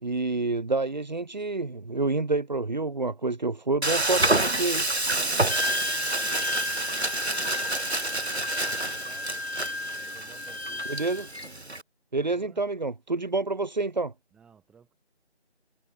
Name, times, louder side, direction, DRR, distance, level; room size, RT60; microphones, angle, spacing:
voice 1, 0.0-4.9 10.9-11.3 12.1-14.1, right 3 dB, 40° right, 3.4 m, -28 dB
Frying (food), 3.8-11.8, right 2 dB, 70° right, 7.6 m, -28 dB
voice 2, 5.2-9.5 9.9-10.9 12.2-12.6 14.3-15.0, right 7 dB, ahead, 8.0 m, -55 dB
Wind instrument woodwind instrument, 5.5-11.5, left 2 dB, 65° left, 4.8 m, -34 dB
figure-of-eight pair, 170°, 34 cm